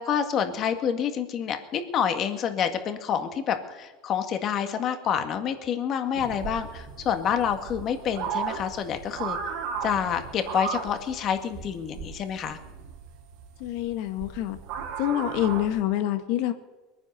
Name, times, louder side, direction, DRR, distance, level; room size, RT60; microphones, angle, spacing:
voice 1, 0.0-9.4 9.8-12.6, left 8 dB, 40° left, 7 dB, 1.8 m, -28 dB
sound 1, 6.1-15.8, right 6 dB, 65° right, 3.1 m, -35 dB
voice 2, 13.6-14.6 15.0-16.5, left 13 dB, 65° left, 9 dB, 1.6 m, -26 dB
22.0 x 9.8 x 6.7 m, 1.2 s
supercardioid pair, 140°, 0 cm